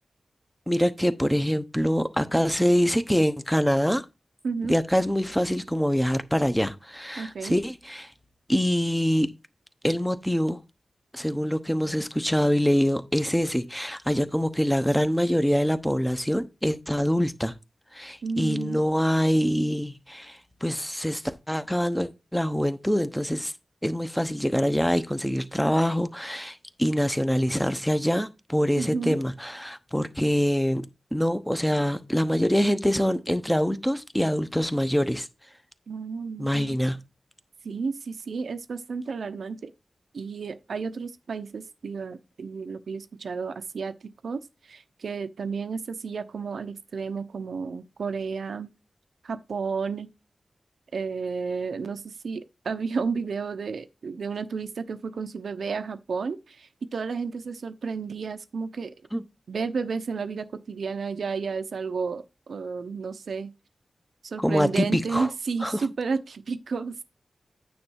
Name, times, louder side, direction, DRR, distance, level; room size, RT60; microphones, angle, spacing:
voice 1, 0.7-4.0 4.6-8.1 8.5-9.3 9.8-10.6 11.1-17.5 17.9-23.5 23.8-35.3 36.4-37.0 59.1-59.2 64.4-65.3 65.6-65.8, equal, 5° left, 0.9 m, -25 dB
voice 2, 4.4-4.8 7.2-7.6 18.2-18.8 28.8-29.2 35.9-36.8 37.6-39.7 40.1-48.7 49.2-50.1 50.9-58.9 59.5-63.5 64.2-67.0, right 5 dB, 85° right, 0.8 m, -32 dB
9.5 x 3.3 x 6.4 m
wide cardioid pair, 80°, 0 cm